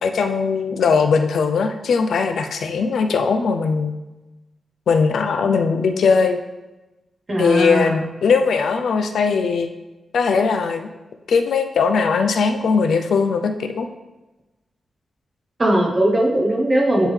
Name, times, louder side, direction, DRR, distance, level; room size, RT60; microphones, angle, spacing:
voice 1, 0.0-3.9 4.9-6.4 7.4-9.7 10.1-10.9 11.3-13.9, left 5 dB, 80° left, 7 dB, 0.5 m, -19 dB
voice 2, 7.3-8.0 15.6-17.1, right 1 dB, 25° right, -1 dB, 1.1 m, -19 dB
9.8 x 3.7 x 3.3 m, 1.1 s
wide cardioid pair, 140°, 0 cm